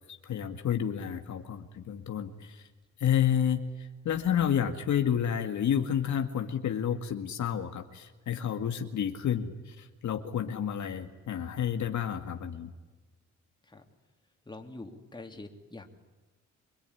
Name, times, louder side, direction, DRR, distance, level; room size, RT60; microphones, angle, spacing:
voice 1, 0.1-2.7 3.0-12.7, left 9 dB, 70° left, 6 dB, 2.0 m, -30 dB
voice 2, 14.4-15.9, left 2 dB, 15° left, 3 dB, 3.2 m, -45 dB
26.0 x 22.0 x 9.9 m, 1.2 s
cardioid pair, 100°, 30 cm